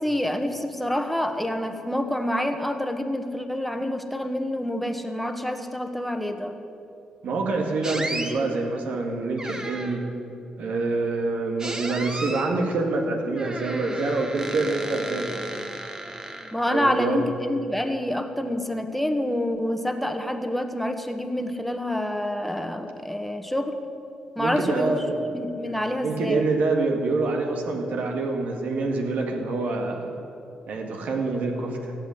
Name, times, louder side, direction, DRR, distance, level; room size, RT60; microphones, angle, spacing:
voice 1, 0.0-6.5 16.5-23.8 24.3-26.4, left 1 dB, 5° left, 6 dB, 1.6 m, -27 dB
voice 2, 7.2-10.1 10.6-15.3 16.7-17.2 24.4-25.2 25.7-30.2 30.7-31.9, right 3 dB, 65° right, 3 dB, 2.0 m, -26 dB
sound 1, 7.8-8.3 9.4-10.1 11.6-12.6 13.3-16.8, right 1 dB, 25° right, 1.5 m, -34 dB
14.5 x 8.2 x 9.6 m, 2.8 s
hypercardioid pair, 45°, 3 cm